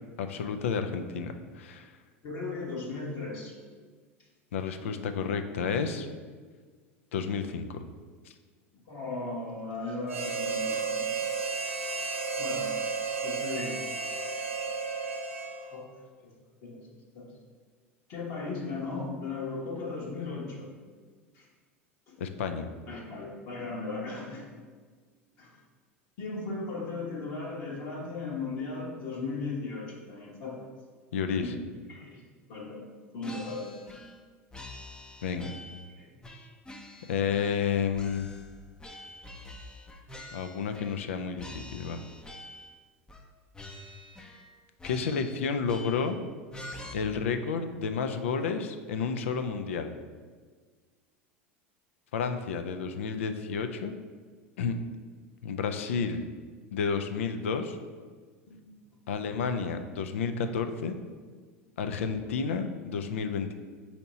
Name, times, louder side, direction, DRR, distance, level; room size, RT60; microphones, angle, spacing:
voice 1, 0.2-1.9 4.5-6.1 7.1-7.8 8.3-8.4 22.2-22.7 31.1-31.5 35.2-35.5 37.1-38.3 40.3-42.0 44.8-46.2 46.9-49.9 52.1-53.9 54.6-54.8 55.4-56.2 56.7-57.8 59.1-61.0 61.8-63.5, left 6 dB, 70° left, 7 dB, 0.4 m, -31 dB
voice 2, 2.2-3.5 8.9-11.1 11.3-11.5 12.4-12.7 13.2-13.8 14.3-14.5 15.6-15.9 16.2-16.3 16.6-16.8 17.1-17.3 18.1-20.7 21.3-21.5 22.9-24.5 25.4-25.5 26.2-30.7 31.4-31.6 31.9-32.2 32.5-32.8 33.1-33.8 36.0-36.1 58.5-58.6, left 3 dB, 55° left, -4 dB, 1.1 m, -36 dB
Harmonica, 10.1-15.9, right 4 dB, 90° right, 0.5 m, -33 dB
sound 1, 33.2-34.2 34.5-35.9 36.2-37.7 37.9-41.1 41.4-42.7 43.1-43.3 43.5-44.5 44.8-46.2 46.5-46.9, left 1 dB, 10° left, 0.5 m, -46 dB
4.3 x 2.8 x 4.1 m, 1.5 s
figure-of-eight pair, 80°, 7 cm